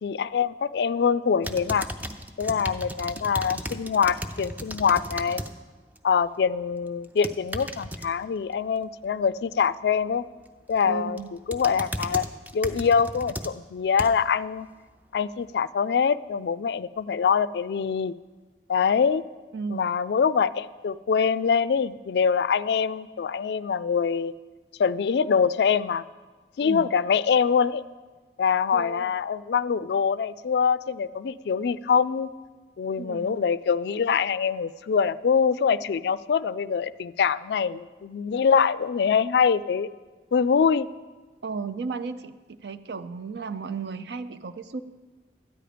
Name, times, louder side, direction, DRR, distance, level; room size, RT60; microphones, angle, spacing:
voice 1, 0.0-1.9 2.4-5.4 6.0-10.2 10.7-11.2 11.5-12.3 12.5-14.7 15.1-18.1 18.7-19.2 19.7-24.3 24.8-26.0 26.6-27.8 28.4-32.3 32.8-39.9 40.3-40.9, left 6 dB, 65° left, 17 dB, 0.3 m, -24 dB
sound 1, 1.4-5.5 5.9-6.3 7.0-8.1 10.5-10.8 11.2-14.3 14.9-15.0, equal, 10° right, 0.5 m, -35 dB
voice 2, 10.9-11.3 19.5-19.9 26.6-26.8 28.7-29.1 33.0-33.3 41.4-42.3 42.6-44.8, right 5 dB, 70° right, 11 dB, 0.5 m, -34 dB
13.0 x 10.0 x 5.0 m, 1.3 s
head